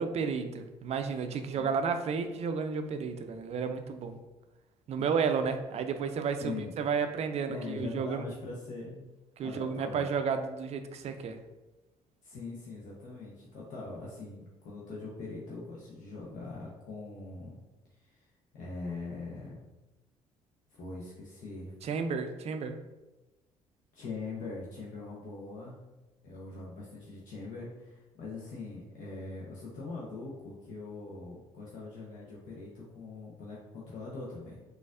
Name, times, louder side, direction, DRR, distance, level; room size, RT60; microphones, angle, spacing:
voice 1, 0.0-4.2 4.9-8.2 9.4-11.4 21.8-22.7, right 5 dB, 45° right, 8 dB, 0.4 m, -32 dB
voice 2, 6.4-6.7 7.5-9.1 9.4-10.0 12.2-17.6 18.1-18.2 18.5-19.6 20.7-21.7 23.9-25.8 26.2-34.6, left 3 dB, 60° left, -5 dB, 0.8 m, -42 dB
4.0 x 2.5 x 2.4 m, 1.1 s
hypercardioid pair, 60°, 15 cm